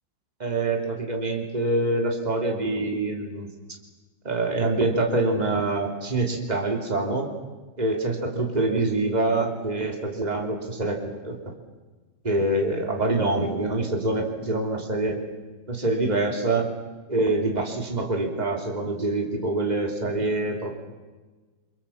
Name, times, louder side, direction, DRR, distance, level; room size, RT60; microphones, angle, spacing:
voice 1, 0.4-3.5 4.2-7.3 7.8-11.5 12.2-15.2 15.7-16.7 17.1-20.8, right 2 dB, 20° right, 1 dB, 3.3 m, -25 dB
30.0 x 24.0 x 7.2 m, 1.3 s
omnidirectional pair, 2.2 m